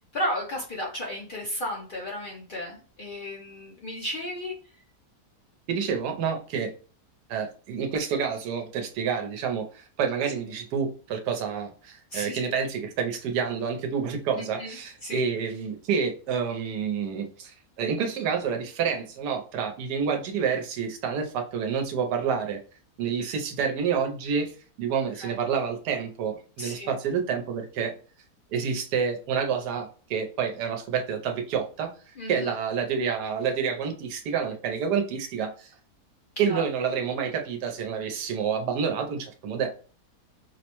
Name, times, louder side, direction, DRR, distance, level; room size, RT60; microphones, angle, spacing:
voice 1, 0.1-4.5 12.1-12.4 14.4-15.3 25.2-25.4 26.6-27.0 32.2-32.5 36.4-36.6, equal, 70° left, -1 dB, 0.4 m, -34 dB
voice 2, 5.7-6.7 7.3-22.6 23.0-24.5 24.8-27.9 28.5-31.9 32.3-35.7 36.4-39.7, right 6 dB, 90° right, 4 dB, 1.2 m, -28 dB
4.9 x 2.0 x 2.9 m, 0.40 s
omnidirectional pair, 1.7 m